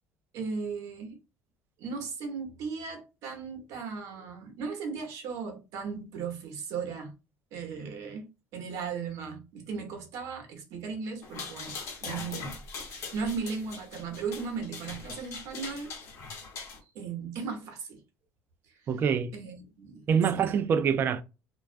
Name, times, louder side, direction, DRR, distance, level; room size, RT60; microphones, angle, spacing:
voice 1, 0.3-1.2 1.8-7.1 7.5-11.8 12.0-15.9 16.8-18.0 18.7-18.9 19.3-20.1 20.3-20.5, right 5 dB, 65° right, 0.8 m, -37 dB
sound 1, 11.2-16.8, left 4 dB, 50° left, 0.8 m, -41 dB
voice 2, 18.9-19.3 20.1-21.2, right 7 dB, 40° right, 0.3 m, -25 dB
2.3 x 2.2 x 2.4 m
cardioid pair, 135°, 6 cm